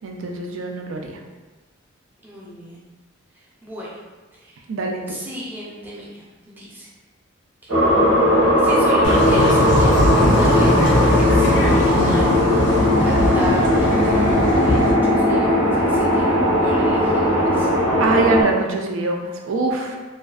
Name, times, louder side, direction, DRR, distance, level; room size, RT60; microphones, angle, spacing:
voice 1, 0.0-1.2 4.7-5.2 18.0-20.0, right 3 dB, 75° right, 1 dB, 0.4 m, -23 dB
voice 2, 2.2-2.8 3.6-3.9 4.4-4.6 5.1-6.9 7.6-7.7 8.4-12.5 13.0-16.3 16.6-17.7, equal, 10° right, -6 dB, 0.5 m, -33 dB
sound 1, 7.7-18.4, equal, 90° right, 1.0 m, -17 dB
sound 2, 9.0-14.9, left 1 dB, 60° left, 0.4 m, -21 dB
2.4 x 2.3 x 2.3 m, 1.3 s
head